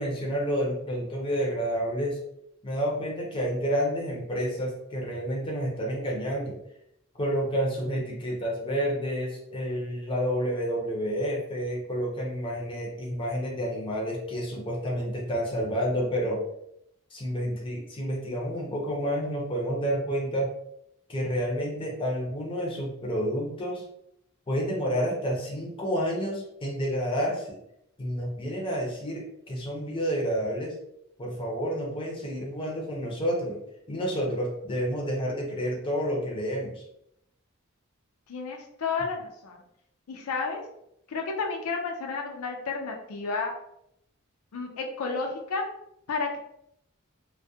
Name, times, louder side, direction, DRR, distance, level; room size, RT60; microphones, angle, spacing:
voice 1, 0.0-2.2 2.6-6.6 7.2-16.4 17.1-20.5 21.1-23.8 24.5-27.6 28.0-30.8 31.2-33.6 33.9-36.8, equal, 25° left, -2 dB, 0.6 m, -29 dB
voice 2, 38.3-39.6 40.1-40.6 41.1-43.5 44.5-45.6 46.1-46.4, left 4 dB, 85° left, 2 dB, 0.5 m, -31 dB
2.3 x 2.1 x 2.6 m, 0.76 s
head